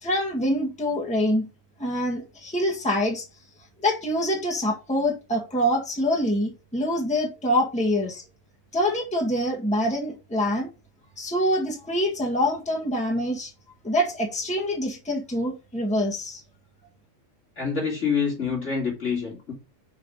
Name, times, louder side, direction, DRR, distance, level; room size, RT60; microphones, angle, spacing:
voice 1, 0.0-1.5 1.8-3.2 3.8-8.2 8.7-10.7 11.2-13.5 13.8-16.4, equal, 5° left, 1.8 m, -25 dB
voice 2, 17.6-19.5, left 6 dB, 60° left, 3.6 m, -26 dB
5.8 x 5.7 x 5.5 m
omnidirectional pair, 1.4 m